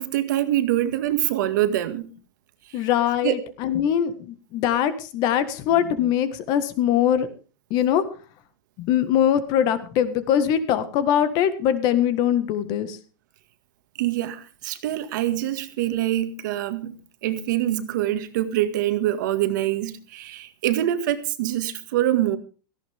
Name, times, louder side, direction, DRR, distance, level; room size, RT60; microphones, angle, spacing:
voice 1, 0.0-2.1 2.7-2.8 3.2-3.4 14.0-22.4, right 13 dB, 60° right, 1.9 m, -25 dB
voice 2, 2.7-7.3 7.7-8.0 8.8-13.0, left 9 dB, 35° left, 1.6 m, -22 dB
17.5 x 14.5 x 3.6 m
supercardioid pair, 165°, 12 cm